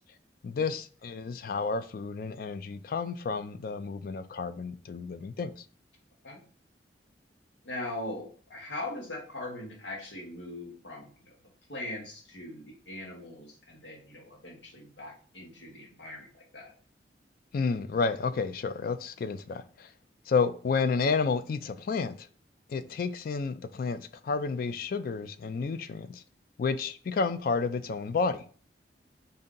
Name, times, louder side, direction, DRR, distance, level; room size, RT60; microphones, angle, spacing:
voice 1, 0.4-5.6 17.5-19.9 20.3-22.3 22.7-26.2 26.6-28.4, left 4 dB, 55° left, 0.3 m, -31 dB
voice 2, 7.6-11.4 11.7-16.7, left 1 dB, 85° left, 1.4 m, -41 dB
4.3 x 2.8 x 3.8 m
head